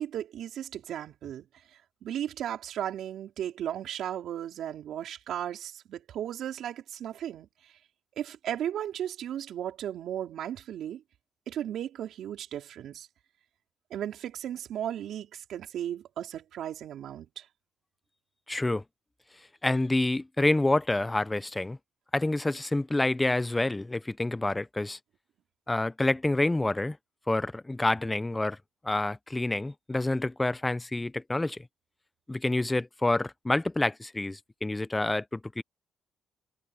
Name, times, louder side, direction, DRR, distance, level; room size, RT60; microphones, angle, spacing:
voice 1, 0.0-1.4 2.0-7.5 8.2-11.0 11.5-13.1 13.9-17.4, right 10 dB, 75° right, 4.4 m, -35 dB
voice 2, 18.5-18.8 19.6-21.8 22.1-25.0 25.7-27.0 27.3-28.6 28.8-31.7 32.3-35.6, left 2 dB, 15° left, 0.8 m, -28 dB
cardioid pair, 90°, 0 cm